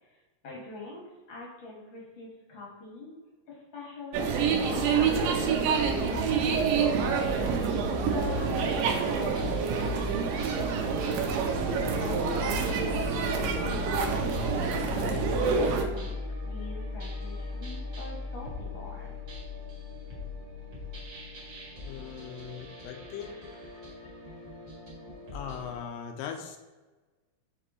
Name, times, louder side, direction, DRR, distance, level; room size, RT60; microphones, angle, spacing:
voice 1, 0.4-3.1 3.5-7.2 8.1-11.1 11.4-19.2, left 3 dB, 50° left, -4 dB, 1.7 m, -44 dB
sound 1, 4.1-15.8, right 5 dB, 80° right, 2.4 m, -27 dB
sound 2, 9.3-25.8, left 4 dB, 40° right, 2.3 m, -39 dB
voice 2, 21.8-23.4 25.3-26.6, left 8 dB, 80° left, 5 dB, 2.1 m, -39 dB
6.8 x 4.5 x 3.0 m, 1.2 s
omnidirectional pair, 4.1 m